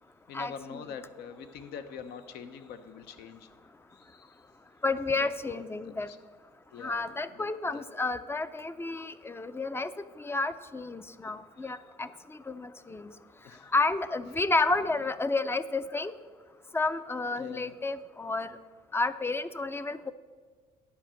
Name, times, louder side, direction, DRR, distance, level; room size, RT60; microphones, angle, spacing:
voice 1, 0.3-3.5 3.9-4.4 5.1-6.2 6.7-7.8 11.6-11.7 12.9-13.0 13.4-13.7 14.9-15.0 17.4-17.8, left 7 dB, 75° left, 10 dB, 0.8 m, -45 dB
voice 2, 4.8-6.1 6.8-9.9 10.2-12.1 12.5-13.1 13.7-16.1 16.7-18.5 18.9-20.1, left 3 dB, 15° left, 13 dB, 0.4 m, -31 dB
10.0 x 5.1 x 7.5 m, 1.5 s
cardioid pair, 110°, 17 cm